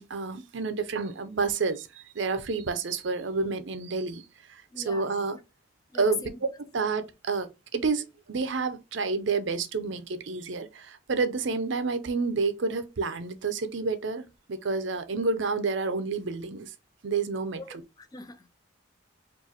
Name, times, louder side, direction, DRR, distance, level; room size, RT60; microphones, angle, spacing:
voice 1, 0.0-5.4 5.9-6.2 6.7-16.7 17.0-17.6, right 4 dB, 65° right, 0.6 m, -29 dB
voice 2, 4.7-5.3 5.9-6.1 17.6-18.5, left 2 dB, 20° left, 0.3 m, -44 dB
4.6 x 2.5 x 2.8 m
head